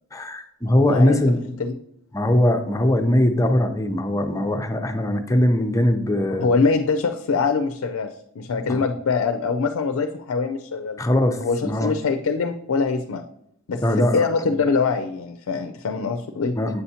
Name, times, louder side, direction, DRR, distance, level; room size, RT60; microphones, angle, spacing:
voice 1, 0.1-1.4 2.1-6.5 8.6-8.8 11.0-11.9 13.8-14.6 16.6-16.8, left 1 dB, 15° left, 5 dB, 0.5 m, -21 dB
voice 2, 0.9-1.2 1.6-1.8 6.4-11.0 11.4-13.2 13.7-16.6, left 4 dB, 75° left, 7 dB, 0.4 m, -23 dB
8.0 x 5.6 x 2.8 m, 0.75 s
head